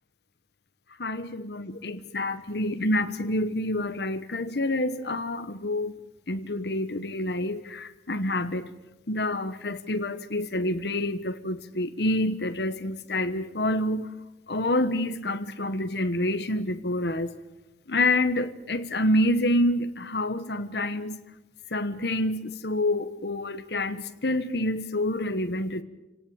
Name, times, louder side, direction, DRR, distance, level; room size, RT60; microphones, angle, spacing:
voice 1, 1.0-5.9 6.3-8.6 9.1-14.1 14.5-17.3 17.9-21.2 21.7-25.8, left 1 dB, 60° left, 9 dB, 1.2 m, -27 dB
27.5 x 18.0 x 8.7 m, 1.0 s
head